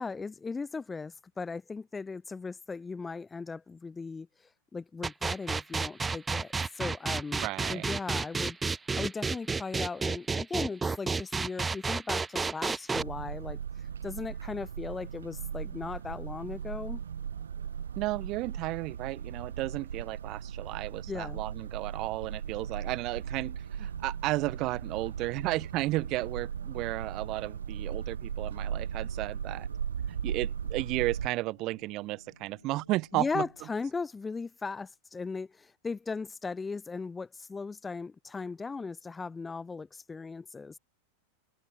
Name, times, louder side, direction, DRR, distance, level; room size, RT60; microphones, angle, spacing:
voice 1, 0.0-17.0 21.1-21.4 33.1-40.8, left 4 dB, 15° left, 2.2 m, -38 dB
sound 1, 5.0-13.0, right 4 dB, 15° right, 0.4 m, -30 dB
voice 2, 7.4-7.9 18.0-29.7 30.1-33.5, right 19 dB, 40° right, 2.6 m, -33 dB
sound 2, 12.9-31.3, right 8 dB, 70° right, 3.7 m, -38 dB
sound 3, 20.1-33.7, left 2 dB, 85° left, 6.2 m, -59 dB
open air
figure-of-eight pair, 90°, 0 cm